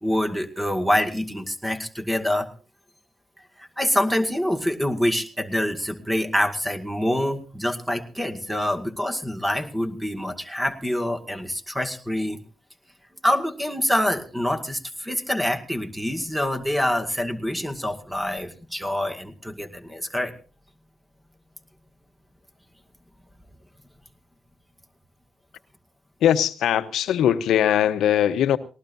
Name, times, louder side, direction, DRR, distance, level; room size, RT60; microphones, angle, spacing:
voice 1, 0.0-2.5 3.6-12.4 13.2-20.3, left 1 dB, 5° right, 2.2 m, -26 dB
voice 2, 26.2-28.6, left 10 dB, 85° left, 0.9 m, -20 dB
19.0 x 19.0 x 2.7 m
supercardioid pair, 55°, 0 cm